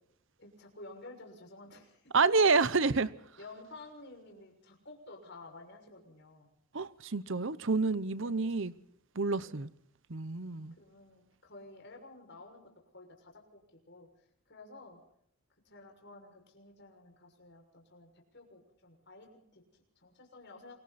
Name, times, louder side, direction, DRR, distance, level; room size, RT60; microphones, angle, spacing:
voice 1, 0.4-2.1 2.5-3.0 3.4-6.5 8.2-8.6 9.4-9.6 10.8-14.1 14.5-15.0 15.6-20.8, left 2 dB, 50° left, 6.5 m, -52 dB
voice 2, 2.1-3.1 6.7-8.7 9.2-9.7 10.1-10.7, right 4 dB, 55° right, 0.9 m, -28 dB
28.0 x 23.5 x 4.3 m
head